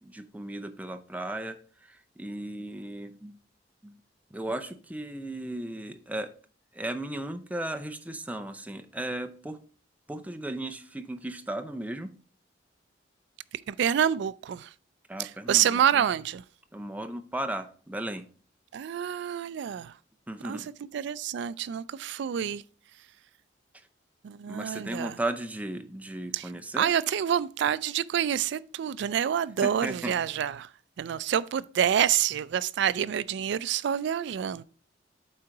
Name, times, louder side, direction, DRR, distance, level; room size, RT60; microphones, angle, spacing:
voice 1, 0.0-3.4 3.8-4.0 4.3-6.3 6.7-9.6 10.1-12.1 15.1-16.1 16.7-18.2 20.3-20.7 24.5-26.9 29.6-30.2, right 1 dB, 10° right, 0.5 m, -36 dB
voice 2, 13.7-14.7 15.2-16.4 18.7-19.9 20.4-20.6 20.9-22.6 24.2-25.2 26.3-26.5 26.8-30.7 31.0-34.6, right 9 dB, 65° right, 0.3 m, -27 dB
8.5 x 3.8 x 4.6 m
head